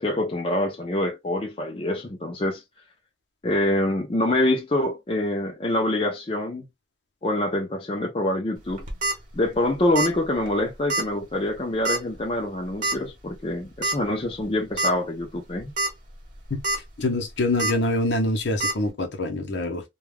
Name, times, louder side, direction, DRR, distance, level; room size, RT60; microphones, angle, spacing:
voice 1, 0.0-2.6 3.4-6.7 7.2-8.9 9.3-15.7, left 1 dB, 30° left, 0.5 m, -25 dB
sound 1, 8.7-9.1 9.9-10.2 10.5-10.6 10.9-11.0 11.8-12.1 12.8-12.9 13.8-14.0 14.4-14.5 14.8-14.9 15.6-15.9 16.3-16.8 17.6-17.7 18.6-18.7, right 2 dB, 45° right, 0.8 m, -25 dB
voice 2, 17.0-19.8, left 1 dB, 70° left, 0.7 m, -25 dB
2.2 x 2.2 x 3.2 m
head